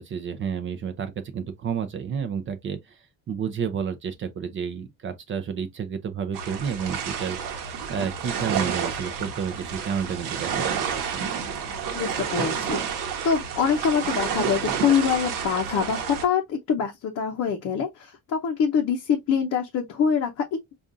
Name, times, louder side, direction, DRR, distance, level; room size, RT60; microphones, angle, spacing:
voice 1, 0.0-11.4, right 7 dB, 35° right, 0.5 m, -31 dB
sound 1, 6.3-16.2, right 7 dB, 65° right, 1.0 m, -30 dB
voice 2, 11.9-20.4, left 7 dB, 45° left, 0.6 m, -25 dB
5.1 x 2.4 x 2.5 m
cardioid pair, 165°, 35 cm